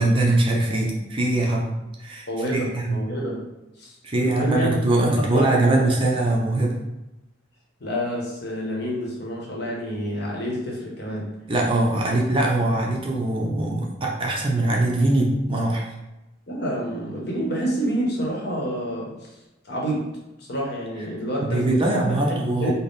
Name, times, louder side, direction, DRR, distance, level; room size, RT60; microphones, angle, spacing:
voice 1, 0.0-1.7 2.0-2.3 2.5-3.0 4.0-6.8 11.5-15.8 21.4-22.7, right 2 dB, 30° right, -2 dB, 0.5 m, -22 dB
voice 2, 2.3-3.4 3.8-3.9 4.2-4.7 5.0-5.9 7.8-11.3 12.0-12.1 16.5-19.3 19.6-20.1 20.4-21.6 21.9-22.7, equal, 60° left, -3 dB, 0.9 m, -28 dB
3.9 x 2.1 x 3.5 m, 0.96 s
head